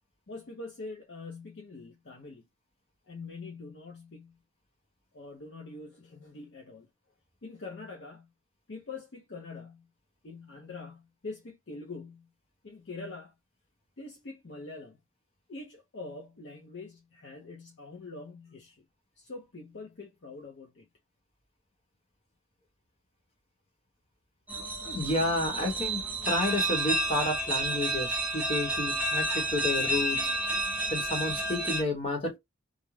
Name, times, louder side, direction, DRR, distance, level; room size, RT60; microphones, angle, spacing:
voice 1, 0.3-2.4 3.1-4.3 5.1-6.9 7.4-8.3 8.7-9.9 10.2-12.3 12.6-13.3 14.0-15.0 15.5-18.8 19.2-20.9, left 3 dB, 60° left, 0.6 m, -44 dB
sound 1, 24.5-31.8, right 1 dB, 10° right, 0.5 m, -30 dB
voice 2, 24.8-30.3 30.9-32.4, left 2 dB, 30° left, 0.9 m, -31 dB
2.4 x 2.1 x 3.0 m
head